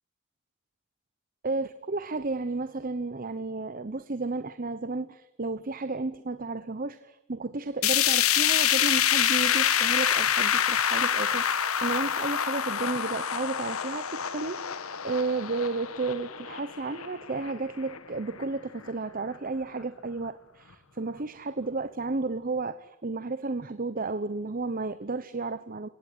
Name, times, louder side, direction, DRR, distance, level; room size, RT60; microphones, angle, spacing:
voice 1, 1.4-25.9, right 3 dB, 40° right, 13 dB, 0.9 m, -32 dB
sound 1, 7.8-18.0 18.4-18.5 18.9-19.0 19.8-19.9, left 9 dB, 90° left, 1.5 m, -26 dB
30.0 x 17.5 x 10.0 m, 0.90 s
head